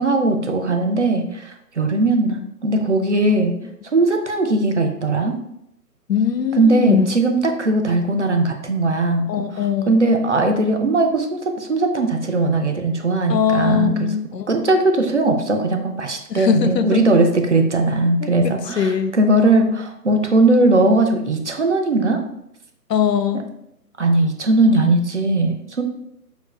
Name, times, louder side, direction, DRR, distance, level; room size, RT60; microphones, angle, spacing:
voice 1, 0.0-3.6 3.9-5.4 6.6-14.1 14.5-22.2 23.3-23.4 24.0-25.8, right 2 dB, 50° right, 4 dB, 0.6 m, -19 dB
voice 2, 6.1-7.1 9.3-9.9 13.3-14.5 16.3-17.0 18.2-19.1 22.9-23.4, left 8 dB, 85° left, 10 dB, 0.5 m, -21 dB
4.9 x 3.1 x 2.3 m, 0.77 s
figure-of-eight pair, 145°, 48 cm